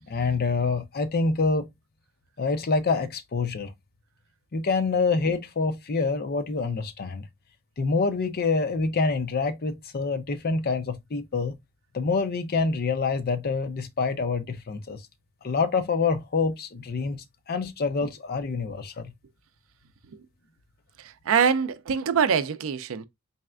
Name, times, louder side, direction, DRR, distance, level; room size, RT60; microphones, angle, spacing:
voice 1, 0.1-1.7 2.4-3.7 4.5-7.3 7.8-11.5 11.9-15.0 15.4-19.1, left 4 dB, 45° left, 0.5 m, -26 dB
voice 2, 21.0-23.1, right 7 dB, 70° right, 0.4 m, -24 dB
4.1 x 3.2 x 2.3 m
head